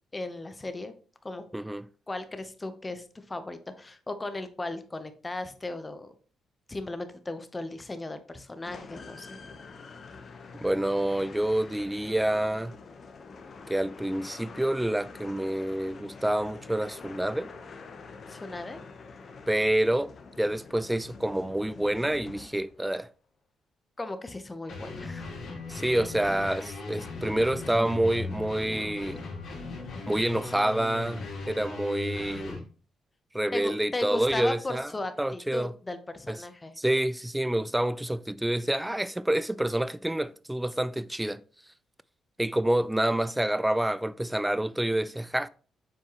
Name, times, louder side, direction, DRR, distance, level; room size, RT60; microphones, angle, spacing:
voice 1, 0.1-0.9 1.2-1.4 2.1-6.1 6.7-9.4 18.3-18.8 24.0-25.4 33.5-36.7, left 2 dB, 20° left, 0.8 m, -36 dB
voice 2, 1.5-1.9 10.6-12.7 13.7-17.5 19.5-23.1 25.7-29.2 30.1-32.6 33.3-34.9 35.2-35.7 36.3-36.4 36.8-41.4 42.4-45.5, right 1 dB, 5° right, 0.3 m, -28 dB
sound 1, 8.6-22.9, left 4 dB, 50° left, 0.9 m, -46 dB
sound 2, 24.7-32.6, left 3 dB, 70° left, 2.8 m, -38 dB
7.4 x 4.4 x 3.0 m
cardioid pair, 95°, 0 cm